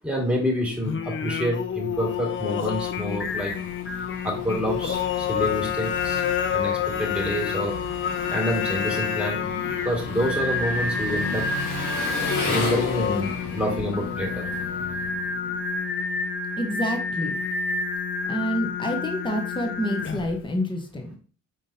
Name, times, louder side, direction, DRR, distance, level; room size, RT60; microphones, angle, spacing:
voice 1, 0.0-3.5 4.2-6.2 6.5-7.7 8.3-9.5 9.8-11.5 12.5-14.4, equal, 5° right, 0 dB, 1.9 m, -27 dB
Singing, 0.8-20.4, left 6 dB, 40° left, 0.6 m, -28 dB
Engine, 2.1-15.7, left 2 dB, 85° left, 1.5 m, -35 dB
voice 2, 16.6-17.4 18.3-21.1, equal, 15° left, 4 dB, 1.0 m, -28 dB
5.0 x 3.7 x 2.8 m, 0.38 s
cardioid pair, 90°, 30 cm